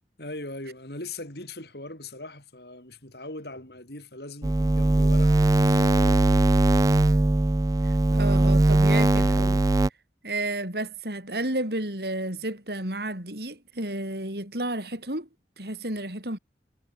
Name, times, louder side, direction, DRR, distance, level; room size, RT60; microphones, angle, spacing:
voice 1, 0.2-6.6, left 2 dB, 65° left, 6.9 m, -40 dB
sound 1, 4.4-9.9, right 2 dB, 20° right, 0.3 m, -20 dB
voice 2, 7.8-9.7 10.2-15.3 15.6-16.4, right 1 dB, 60° right, 6.2 m, -32 dB
head